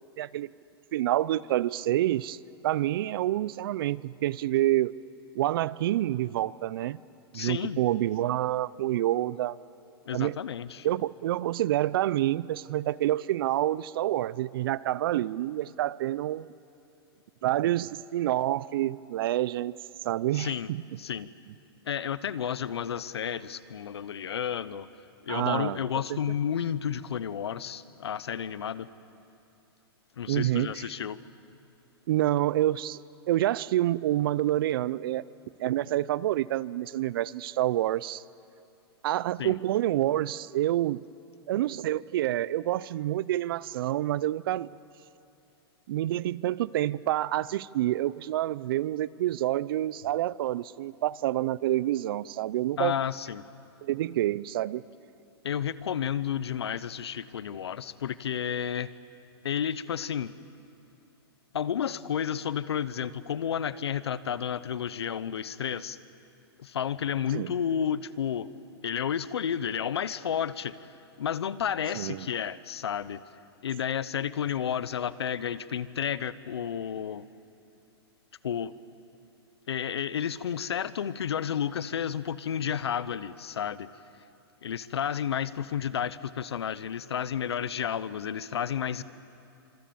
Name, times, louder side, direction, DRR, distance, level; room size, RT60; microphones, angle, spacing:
voice 1, 0.2-0.5 0.9-2.4 2.6-4.9 5.3-7.0 7.3-9.6 10.1-10.4 10.8-16.5 17.4-19.8 20.0-20.8 25.3-25.8 26.1-26.2 30.3-30.8 32.1-33.0 33.3-35.2 35.6-38.2 39.0-41.0 41.5-44.7 45.9-52.9 53.8-54.8 67.3-67.5 71.9-72.3, right 14 dB, 60° right, 21 dB, 0.6 m, -28 dB
voice 2, 7.3-7.8 10.1-10.9 20.3-20.7 21.0-21.3 21.9-24.9 25.2-28.9 30.2-31.2 39.4-39.6 52.8-53.4 55.4-58.9 59.4-60.3 61.5-66.0 66.6-68.5 68.8-73.2 73.6-77.3 78.4-78.7 79.7-83.9 84.6-89.0, left 8 dB, 90° left, 17 dB, 0.9 m, -31 dB
26.0 x 25.0 x 7.1 m, 2.7 s
hypercardioid pair, 140°, 13 cm